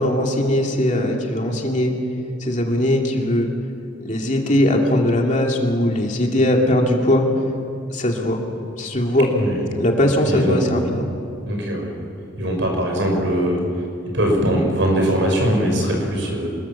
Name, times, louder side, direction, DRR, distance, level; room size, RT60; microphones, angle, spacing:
voice 1, 0.0-1.9 2.4-3.5 4.0-7.3 7.9-8.4 8.8-9.3 9.7-11.1, left 1 dB, 40° left, 1 dB, 2.6 m, -19 dB
voice 2, 10.2-10.6 11.5-11.9 12.4-13.7 14.1-16.5, right 1 dB, 65° right, 2 dB, 5.8 m, -21 dB
25.5 x 21.0 x 7.3 m, 2.5 s
head